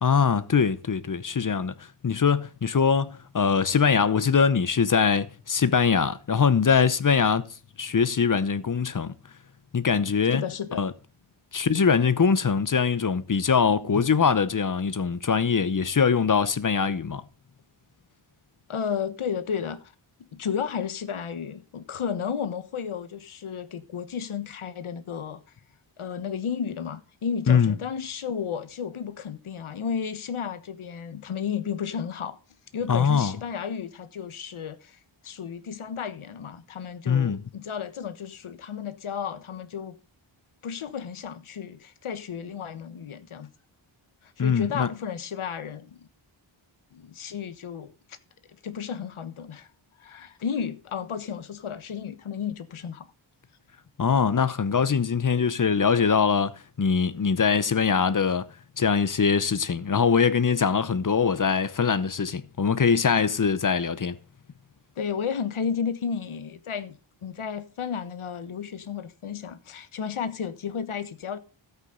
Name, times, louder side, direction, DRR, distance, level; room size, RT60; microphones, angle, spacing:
voice 1, 0.0-7.5 7.8-9.1 9.7-10.4 10.7-10.9 11.5-17.2 27.5-27.7 32.9-33.3 37.1-37.4 44.4-44.9 54.0-64.2, left 6 dB, 40° left, 0.8 m, -22 dB
voice 2, 10.3-10.8 18.7-19.9 20.3-25.4 26.0-32.4 32.7-39.9 40.6-43.5 44.2-46.1 46.9-48.2 48.6-49.7 50.0-53.1 65.0-71.4, left 7 dB, 85° left, 1.2 m, -33 dB
13.0 x 8.4 x 3.8 m
wide cardioid pair, 110°, 48 cm